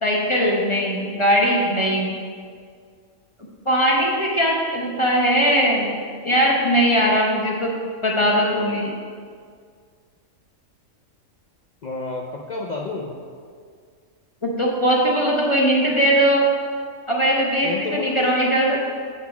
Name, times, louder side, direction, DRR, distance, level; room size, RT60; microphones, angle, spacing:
voice 1, 0.0-2.2 3.7-5.9 6.2-7.7 8.0-8.9 14.4-16.4 17.1-18.8, equal, 25° left, -3 dB, 0.8 m, -20 dB
voice 2, 11.8-13.1 17.6-18.4, left 3 dB, 65° left, -2 dB, 0.4 m, -30 dB
7.3 x 4.2 x 5.7 m, 2.1 s
omnidirectional pair, 1.5 m